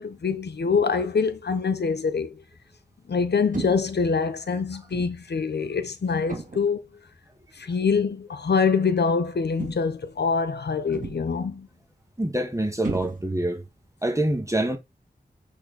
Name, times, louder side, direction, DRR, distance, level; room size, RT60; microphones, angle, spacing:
voice 1, 0.0-2.4 3.1-6.8 7.5-11.7, left 5 dB, 80° left, 0.8 m, -25 dB
sound 1, 3.5-4.0 4.9-5.2 6.3-6.8 7.9-8.1 9.6-10.1 10.9-11.4 12.8-13.5, right 3 dB, 50° right, 2.1 m, -35 dB
voice 2, 12.2-13.6 14.0-14.8, right 1 dB, 20° right, 1.7 m, -25 dB
8.1 x 4.0 x 4.1 m
wide cardioid pair, 60°, 17 cm